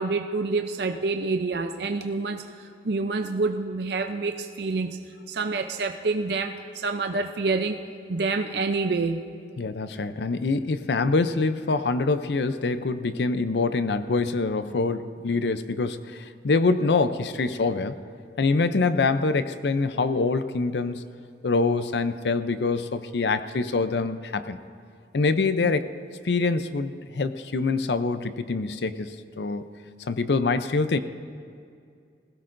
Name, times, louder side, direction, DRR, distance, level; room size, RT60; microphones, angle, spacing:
voice 1, 0.0-2.4 2.8-5.0 5.3-7.8 8.1-9.2, right 3 dB, 65° right, 6 dB, 0.5 m, -27 dB
voice 2, 9.6-18.0 18.4-21.0 21.4-24.6 25.1-25.9 26.2-29.7 30.1-31.0, left 3 dB, 75° left, 11 dB, 0.5 m, -25 dB
20.0 x 16.5 x 2.6 m, 2.3 s
head